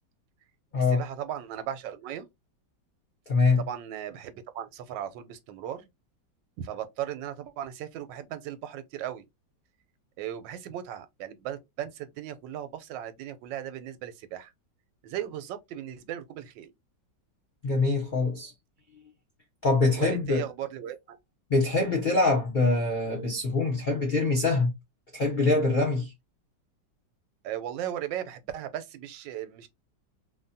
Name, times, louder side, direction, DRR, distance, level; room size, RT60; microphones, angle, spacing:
voice 1, 0.8-2.3 3.6-5.9 6.6-9.3 10.2-14.5 15.0-16.7 20.0-21.2 23.9-24.0 27.4-29.7, right 11 dB, 90° right, 1.3 m, -37 dB
voice 2, 3.3-3.6 17.6-18.5 19.6-20.5 21.5-24.7 25.1-26.1, left 3 dB, 75° left, 0.4 m, -24 dB
3.5 x 2.1 x 2.6 m
omnidirectional pair, 1.9 m